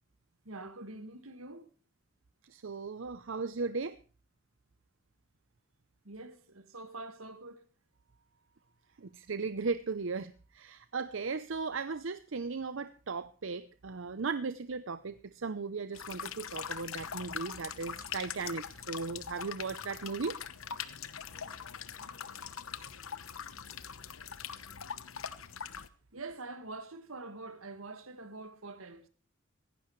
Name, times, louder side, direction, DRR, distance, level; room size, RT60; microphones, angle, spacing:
voice 1, 0.5-1.7 6.1-7.6 26.1-29.1, right 2 dB, 90° right, 1.8 m, -45 dB
voice 2, 2.5-4.0 9.0-20.4, right 4 dB, 70° right, 0.6 m, -37 dB
sound 1, 15.9-25.9, left 7 dB, 85° left, 1.0 m, -42 dB
18.0 x 15.0 x 3.2 m
head